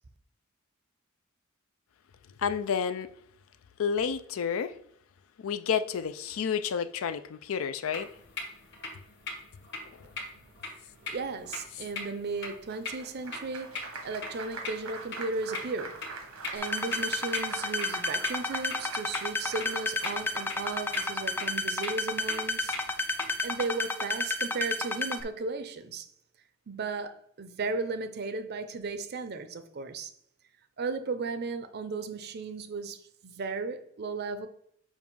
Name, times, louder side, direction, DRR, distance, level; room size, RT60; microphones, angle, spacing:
voice 1, 2.4-3.1 3.8-4.7 5.4-8.1 10.0-10.1, left 7 dB, 75° left, 0.4 m, -30 dB
sound 1, 7.9-23.5, left 3 dB, 60° left, 1.5 m, -42 dB
voice 2, 11.0-16.1 16.5-22.8 23.4-26.1 26.7-30.1 30.8-34.5, right 3 dB, 50° right, 0.6 m, -35 dB
Applause, 12.7-21.4, right 4 dB, 85° right, 1.2 m, -43 dB
sound 2, 16.6-25.2, left 2 dB, 10° left, 0.4 m, -31 dB
7.1 x 2.5 x 5.3 m
head